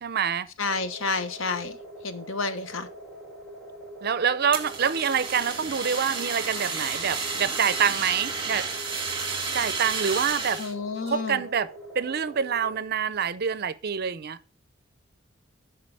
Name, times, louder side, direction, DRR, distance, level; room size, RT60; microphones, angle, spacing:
voice 1, 0.0-0.5 4.0-8.7 9.5-10.6 11.0-14.4, right 7 dB, 50° right, 0.6 m, -26 dB
voice 2, 0.6-1.8 2.0-2.9 10.6-11.4, left 4 dB, 85° left, 1.1 m, -30 dB
sound 1, 0.6-12.8, right 1 dB, ahead, 2.2 m, -44 dB
Fire, 4.5-10.7, right 4 dB, 25° right, 1.9 m, -31 dB
12.0 x 4.7 x 4.7 m
head